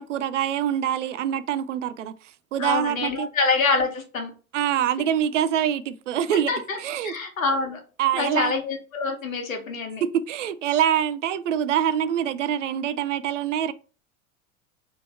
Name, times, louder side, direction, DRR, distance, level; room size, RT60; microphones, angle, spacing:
voice 1, 0.0-2.1 2.5-3.3 4.5-6.5 6.8-7.1 8.0-8.5 10.0-13.7, right 10 dB, 60° right, 0.5 m, -25 dB
voice 2, 2.6-4.3 6.5-6.8 7.0-7.8 8.1-10.0, left 4 dB, 70° left, 1.3 m, -26 dB
3.8 x 2.9 x 4.2 m
figure-of-eight pair, 85°, 42 cm